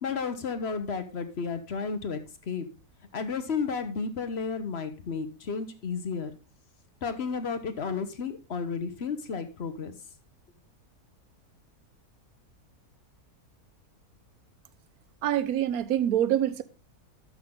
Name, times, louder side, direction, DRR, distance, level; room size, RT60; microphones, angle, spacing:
voice 1, 0.0-2.2 2.5-2.7 3.1-6.3 7.0-9.9, left 5 dB, 50° left, 1.1 m, -32 dB
voice 2, 15.2-16.6, right 11 dB, 70° right, 1.2 m, -25 dB
12.5 x 6.2 x 3.7 m
omnidirectional pair, 1.7 m